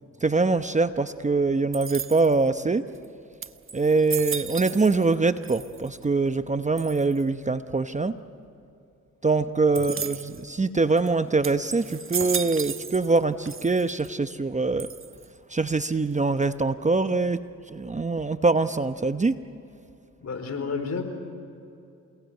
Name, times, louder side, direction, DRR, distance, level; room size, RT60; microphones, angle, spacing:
voice 1, 0.2-2.9 3.7-8.2 9.2-14.9 15.5-19.4, right 3 dB, 20° right, 10 dB, 0.9 m, -24 dB
sound 1, 1.7-2.5 3.0-3.1 3.4-5.2 5.4-6.0 6.8-7.2 9.8-10.4 11.0-11.1 11.4-13.2 13.5-14.1 14.8-15.4, right 6 dB, 40° right, 1.2 m, -34 dB
voice 2, 20.2-21.0, left 5 dB, 55° left, 6 dB, 4.5 m, -30 dB
28.0 x 18.5 x 9.0 m, 2.6 s
cardioid pair, 65°, 32 cm